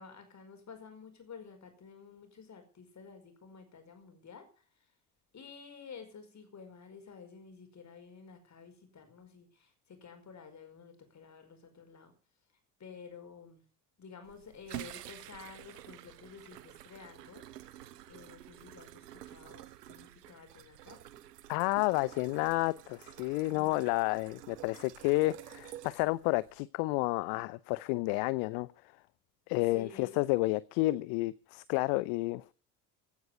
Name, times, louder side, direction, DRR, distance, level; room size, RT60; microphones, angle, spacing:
voice 1, 0.0-4.6 5.3-12.1 12.8-13.6 14.0-17.5 18.1-21.0 29.7-30.4, left 5 dB, 35° left, 5.3 m, -51 dB
sound 1, 14.2-26.6, right 13 dB, 75° right, 1.1 m, -50 dB
voice 2, 21.5-28.7 29.5-32.4, left 21 dB, 55° left, 0.7 m, -30 dB
16.0 x 9.6 x 6.8 m
figure-of-eight pair, 55°, 48 cm